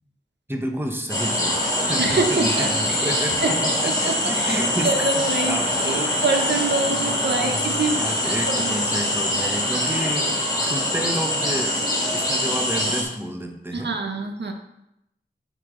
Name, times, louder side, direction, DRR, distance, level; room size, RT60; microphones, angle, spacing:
voice 1, 0.5-3.9 4.2-5.1 5.4-5.7 6.9-7.1 7.4-11.8 12.1-13.9, right 1 dB, 10° right, 3 dB, 1.0 m, -30 dB
sound 1, 1.1-13.0, left 1 dB, 20° left, 2.9 m, -23 dB
voice 2, 2.0-3.1 3.4-3.5 3.8-8.8 13.7-14.5, right 3 dB, 75° right, 3 dB, 1.0 m, -26 dB
8.3 x 5.2 x 3.9 m, 0.82 s
wide cardioid pair, 70°, 18 cm